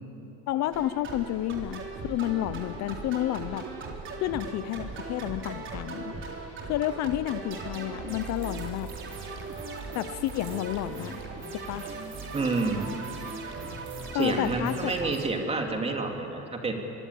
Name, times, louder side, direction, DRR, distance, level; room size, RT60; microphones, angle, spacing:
voice 1, 0.5-3.6 4.2-6.1 6.7-8.9 9.9-11.2 11.5-11.9 14.1-14.9, left 14 dB, 55° left, 14 dB, 0.8 m, -30 dB
sound 1, 0.7-15.3, right 3 dB, 40° right, 3.7 m, -38 dB
sound 2, 1.2-14.8, left 4 dB, 85° left, 6.4 m, -56 dB
sound 3, 8.1-14.2, right 7 dB, 65° right, 6.0 m, -57 dB
voice 2, 12.3-12.9 14.1-16.7, right 3 dB, 20° right, 3 dB, 3.1 m, -29 dB
24.0 x 23.5 x 8.6 m, 2.9 s
cardioid pair, 135°, 32 cm